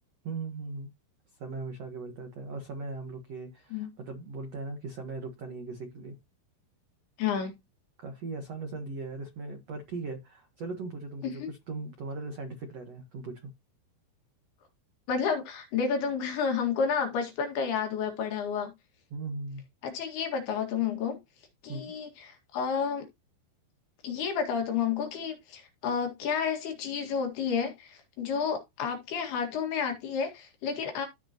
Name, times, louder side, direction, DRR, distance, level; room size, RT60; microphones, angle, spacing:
voice 1, 0.2-0.9 1.4-6.1 8.0-13.5 19.1-19.6 21.7-21.9, right 3 dB, 65° right, 1.6 m, -39 dB
voice 2, 7.2-7.5 11.2-11.5 15.1-18.7 19.8-21.2 21.6-23.1 24.0-31.1, left 6 dB, 60° left, 3.8 m, -30 dB
15.5 x 5.3 x 3.0 m
omnidirectional pair, 5.3 m